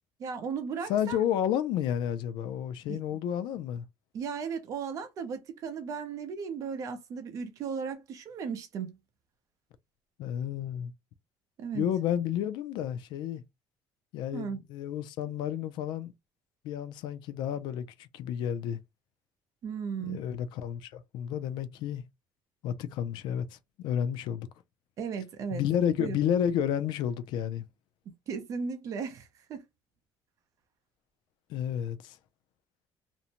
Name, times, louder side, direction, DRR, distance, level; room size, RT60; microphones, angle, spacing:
voice 1, 0.2-1.2 2.9-3.2 4.1-9.0 11.6-11.9 14.3-14.6 19.6-20.2 25.0-25.6 26.0-26.2 28.3-29.6, right 6 dB, 40° right, 0.6 m, -36 dB
voice 2, 0.9-3.8 10.2-10.9 11.7-13.4 14.1-16.1 16.6-18.8 20.1-22.0 22.6-24.5 25.5-27.6 31.5-32.2, left 9 dB, 70° left, 0.4 m, -31 dB
2.6 x 2.1 x 2.8 m
cardioid pair, 170°, 8 cm